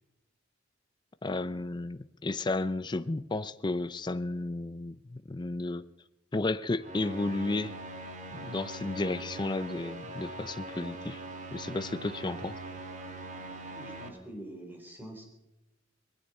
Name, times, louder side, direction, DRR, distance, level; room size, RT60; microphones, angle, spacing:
voice 1, 1.2-5.9 6.3-7.7 8.3-11.2 11.5-12.6, left 2 dB, 25° left, 0.5 m, -33 dB
sound 1, 6.8-14.1, right 2 dB, 40° right, 2.1 m, -42 dB
voice 2, 13.7-15.2, right 1 dB, 10° right, 3.9 m, -45 dB
20.5 x 16.0 x 4.3 m
head